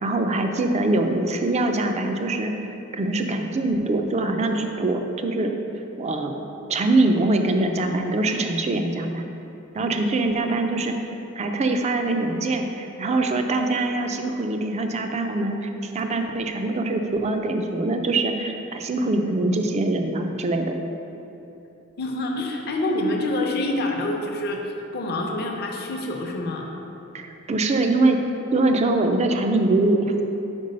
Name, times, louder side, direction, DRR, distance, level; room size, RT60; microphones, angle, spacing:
voice 1, 0.0-2.5 2.9-5.6 6.0-6.4 6.7-9.2 9.7-11.0 11.4-20.8 27.1-28.2 28.5-30.1, right 2 dB, 30° right, 5 dB, 0.4 m, -23 dB
voice 2, 22.0-24.6 24.9-26.7, left 1 dB, 50° left, 1 dB, 0.6 m, -26 dB
5.3 x 4.6 x 5.3 m, 2.9 s
head